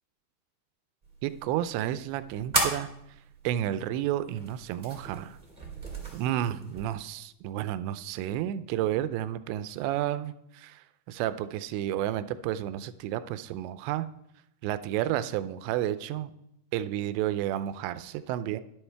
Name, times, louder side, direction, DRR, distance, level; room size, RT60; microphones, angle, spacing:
sound 1, 1.0-6.9, right 2 dB, 25° right, 1.0 m, -36 dB
voice 1, 1.2-2.9 3.4-5.4 6.1-14.1 14.6-16.3 16.7-18.6, right 12 dB, 85° right, 13 dB, 2.7 m, -31 dB
11.5 x 10.5 x 3.3 m, 0.81 s
omnidirectional pair, 5.2 m